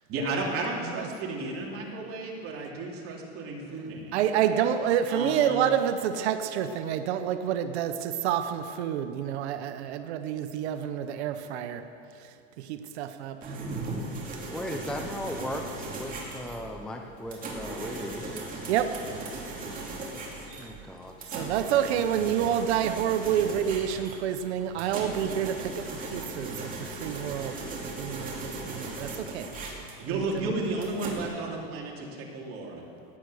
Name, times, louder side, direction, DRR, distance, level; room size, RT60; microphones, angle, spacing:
voice 1, 0.1-4.6 5.1-5.6 30.0-32.7, right 2 dB, 45° right, -2 dB, 3.1 m, -33 dB
voice 2, 4.1-11.8 12.6-13.6 18.7-19.0 21.3-29.5 30.1-30.6 31.0-31.1, right 9 dB, 90° right, 9 dB, 1.0 m, -28 dB
sound 1, 13.4-31.2, right 2 dB, 25° right, 2.9 m, -38 dB
voice 3, 14.5-18.5 20.6-21.3, left 1 dB, ahead, 3 dB, 0.6 m, -37 dB
16.0 x 9.9 x 6.4 m, 2.6 s
supercardioid pair, 140°, 32 cm